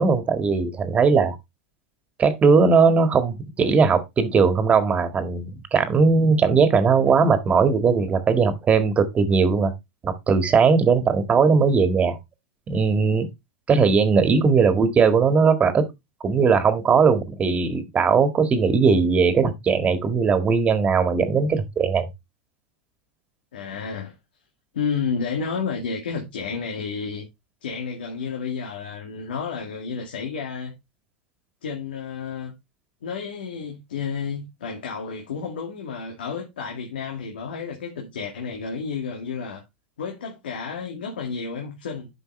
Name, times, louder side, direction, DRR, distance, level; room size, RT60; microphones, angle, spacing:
voice 1, 0.0-1.4 2.2-9.7 10.0-12.2 12.7-13.3 13.7-15.9 16.2-22.1, right 5 dB, 25° right, 1.8 m, -19 dB
voice 2, 23.5-24.2 24.7-27.3 27.6-30.7 31.6-32.5 33.0-39.6 40.0-42.1, left 5 dB, 90° left, 2.1 m, -31 dB
10.0 x 5.6 x 3.2 m
hypercardioid pair, 115°, 5 cm